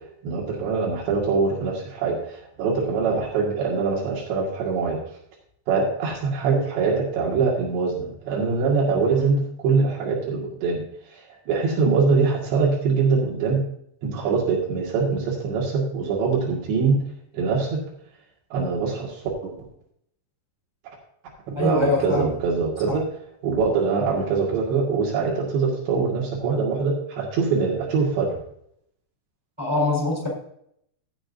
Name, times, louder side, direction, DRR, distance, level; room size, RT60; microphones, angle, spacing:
voice 1, 0.2-5.0 5.7-10.8 11.1-13.6 14.0-17.0 17.3-17.8 18.5-19.7 21.6-23.1 23.4-28.3, right 4 dB, 75° right, -3 dB, 4.1 m, -23 dB
voice 2, 21.6-22.3 22.9-23.0 29.6-30.3, left 2 dB, 5° right, -4 dB, 3.7 m, -23 dB
15.5 x 8.7 x 2.7 m, 0.71 s
omnidirectional pair, 5.1 m